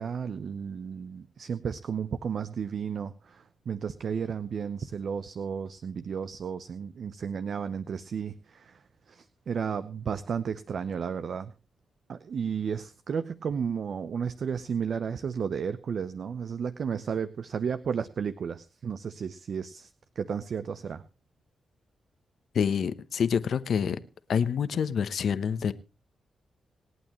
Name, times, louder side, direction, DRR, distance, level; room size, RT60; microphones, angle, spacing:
voice 1, 0.0-11.5 12.1-19.9 20.2-21.0, right 7 dB, 65° right, 0.7 m, -33 dB
voice 2, 22.5-24.0 24.3-25.7, left 7 dB, 75° left, 1.0 m, -27 dB
26.5 x 8.9 x 3.1 m
cardioid pair, 70°, 0 cm